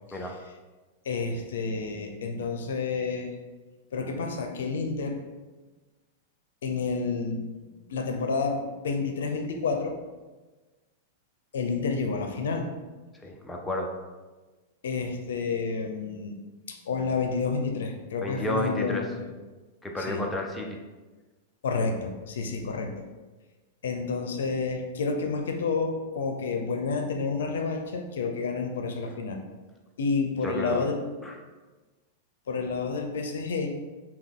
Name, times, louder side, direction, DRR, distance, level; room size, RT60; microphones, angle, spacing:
voice 1, 1.0-3.3 3.9-5.2 6.6-7.6 7.9-10.0 11.5-12.7 14.8-16.4 16.7-19.3 20.0-20.2 21.6-23.0 23.8-29.4 30.0-31.0 32.5-33.7, left 4 dB, 90° left, 5 dB, 0.5 m, -30 dB
voice 2, 13.2-13.9 18.2-19.0 19.8-20.8 30.4-30.8 31.2-31.4, left 1 dB, 5° left, 1 dB, 0.5 m, -31 dB
5.8 x 2.2 x 3.5 m, 1.2 s
supercardioid pair, 150°, 0 cm